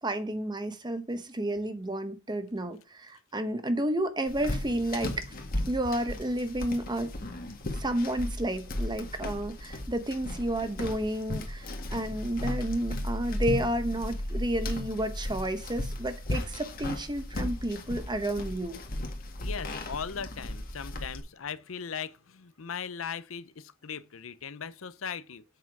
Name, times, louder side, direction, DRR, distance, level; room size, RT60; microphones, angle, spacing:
voice 1, 0.0-5.3 5.7-7.1 7.7-18.8, right 1 dB, 20° right, 1.0 m, -31 dB
sound 1, 4.3-21.2, left 1 dB, 45° left, 1.8 m, -35 dB
voice 2, 19.4-25.4, left 7 dB, 80° left, 0.7 m, -38 dB
7.9 x 5.8 x 4.6 m
head